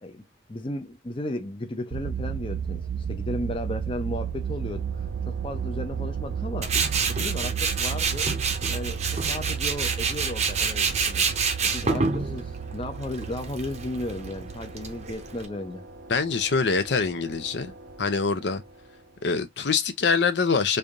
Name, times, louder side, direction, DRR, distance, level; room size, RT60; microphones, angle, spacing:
voice 1, 0.0-2.8 3.1-4.9 5.3-6.7 7.1-8.3 8.7-11.3 11.6-15.9, left 1 dB, 30° left, 0.6 m, -34 dB
sound 1, 1.9-15.1, right 7 dB, 70° right, 0.3 m, -33 dB
sound 2, 3.7-19.5, right 1 dB, 85° right, 0.9 m, -46 dB
Tools, 6.6-15.5, right 5 dB, 35° right, 0.7 m, -28 dB
voice 2, 16.1-17.7 18.0-18.6 19.2-20.8, left 5 dB, 70° left, 0.6 m, -24 dB
3.3 x 2.7 x 3.5 m
head